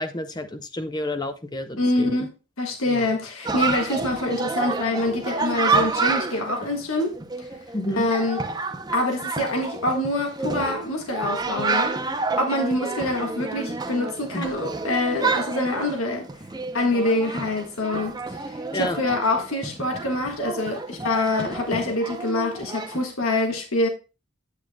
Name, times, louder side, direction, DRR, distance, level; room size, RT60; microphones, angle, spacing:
voice 1, 0.0-2.3 2.9-3.1 7.7-8.1 14.3-14.5 18.7-19.0, left 1 dB, 20° left, 0.6 m, -30 dB
voice 2, 1.8-2.3 2.6-7.5 8.0-8.4 8.9-16.3 16.7-23.9, left 2 dB, 85° left, 1.6 m, -25 dB
Chatter, 3.4-23.0, right 4 dB, 20° right, 0.6 m, -29 dB
8.8 x 8.4 x 2.2 m
head